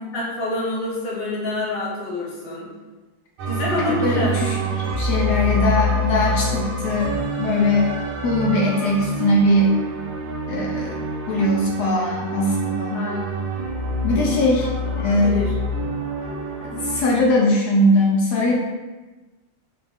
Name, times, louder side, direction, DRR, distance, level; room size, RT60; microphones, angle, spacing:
voice 1, 0.1-2.7 3.5-4.4 12.9-13.4 15.0-15.5, left 2 dB, 40° left, -5 dB, 0.9 m, -27 dB
sound 1, 3.4-17.0, equal, 90° right, 1.6 m, -26 dB
voice 2, 4.0-4.6 4.9-7.9 8.2-9.8 10.5-13.0 14.0-14.7 15.0-15.4 16.6-18.6, left 1 dB, 90° left, -2 dB, 0.9 m, -20 dB
5.1 x 2.4 x 3.4 m, 1.2 s
omnidirectional pair, 2.3 m